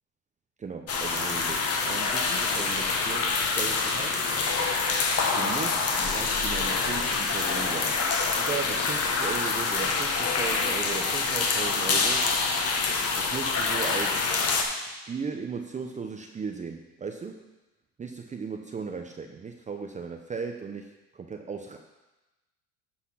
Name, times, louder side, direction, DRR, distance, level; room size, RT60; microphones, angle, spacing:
voice 1, 0.6-4.2 5.3-8.0 8.3-12.3 13.2-14.3 14.9-17.4 18.0-20.9 21.1-21.8, right 5 dB, 20° right, 4 dB, 0.6 m, -37 dB
sound 1, 0.9-14.6, left 4 dB, 40° left, 1.4 m, -26 dB
10.0 x 4.1 x 6.2 m, 1.0 s
supercardioid pair, 90°, 37 cm